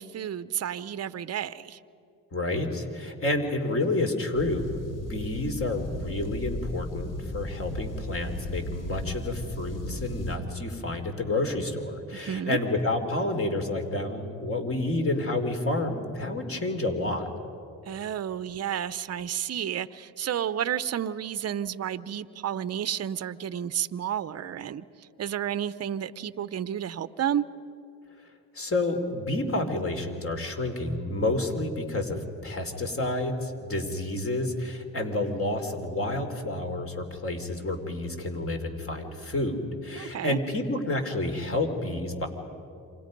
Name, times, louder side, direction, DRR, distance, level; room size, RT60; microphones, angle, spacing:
voice 1, 0.0-1.8 12.1-12.6 17.9-24.8 25.2-27.5 40.0-40.4, right 9 dB, 45° right, 15 dB, 0.8 m, -31 dB
voice 2, 2.3-17.3 28.5-42.3, left 2 dB, 35° left, 5 dB, 3.4 m, -29 dB
sound 1, 4.3-10.4, left 1 dB, 60° left, 2.8 m, -36 dB
28.0 x 25.5 x 5.4 m, 2.6 s
cardioid pair, 75°, 36 cm